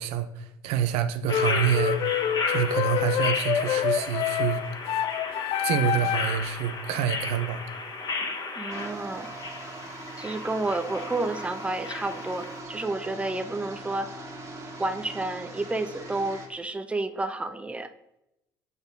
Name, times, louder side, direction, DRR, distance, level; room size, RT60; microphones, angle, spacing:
voice 1, 0.0-2.0 2.5-4.6 5.6-7.6, right 9 dB, 70° right, 10 dB, 0.6 m, -27 dB
sound 1, 1.3-6.4, left 10 dB, 60° left, 0.5 m, -27 dB
sound 2, 1.3-12.6, left 3 dB, 40° left, 1.7 m, -34 dB
voice 2, 8.5-9.3 10.2-14.1 14.8-17.9, right 2 dB, 10° right, 9 dB, 0.6 m, -30 dB
sound 3, 8.7-16.5, right 2 dB, 30° right, 2.0 m, -40 dB
6.9 x 4.1 x 5.3 m, 0.86 s
hypercardioid pair, 70°, 11 cm